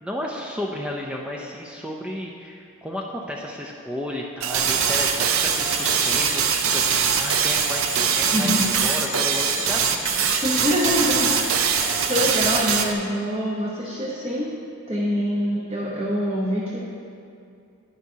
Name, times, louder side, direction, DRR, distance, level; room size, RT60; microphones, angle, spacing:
voice 1, 0.0-10.4, left 1 dB, 5° right, -1 dB, 0.4 m, -33 dB
sound 1, 4.4-12.9, right 7 dB, 70° right, 0.6 m, -22 dB
sound 2, 5.4-12.4, left 9 dB, 80° left, 0.5 m, -37 dB
voice 2, 8.3-8.7 10.4-14.5 14.9-16.8, equal, 25° right, -6 dB, 0.9 m, -25 dB
10.5 x 10.0 x 2.8 m, 2.5 s
head